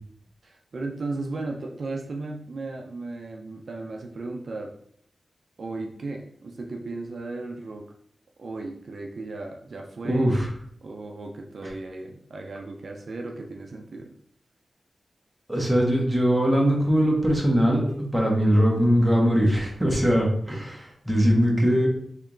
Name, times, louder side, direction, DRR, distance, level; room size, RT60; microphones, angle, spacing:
voice 1, 0.4-4.7 5.6-7.9 8.4-10.3 10.8-14.1 20.5-20.7, right 3 dB, 60° right, 2 dB, 0.4 m, -35 dB
voice 2, 10.0-10.5 15.5-21.9, equal, 10° right, -1 dB, 1.0 m, -21 dB
3.3 x 2.9 x 3.7 m, 0.64 s
wide cardioid pair, 115°, 0 cm